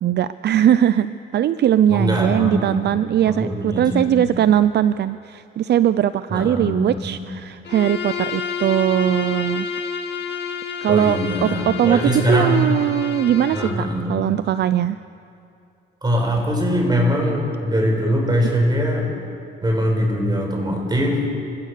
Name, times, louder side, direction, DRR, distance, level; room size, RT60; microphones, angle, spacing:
voice 1, 0.0-9.7 10.8-12.0 12.3-15.0, right 10 dB, 60° right, 14 dB, 0.5 m, -20 dB
voice 2, 1.9-4.3 6.3-7.2 10.9-12.7 13.5-14.2 16.0-19.1 19.6-21.2, equal, 20° right, 1 dB, 6.0 m, -22 dB
Bowed string instrument, 7.6-13.8, left 6 dB, 60° left, 1.9 m, -30 dB
28.5 x 15.5 x 6.7 m, 2.7 s
cardioid pair, 90°, 20 cm